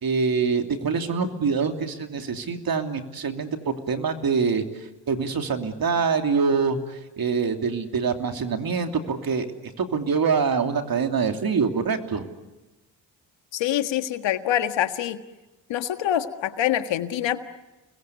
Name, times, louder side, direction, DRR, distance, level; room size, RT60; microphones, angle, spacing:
voice 1, 0.0-4.6 5.1-9.5 9.8-12.3, right 5 dB, 50° right, 6 dB, 3.1 m, -25 dB
voice 2, 13.5-15.2 15.7-17.4, left 11 dB, 80° left, 9 dB, 1.8 m, -25 dB
29.5 x 22.0 x 8.2 m, 1.1 s
supercardioid pair, 65°, 44 cm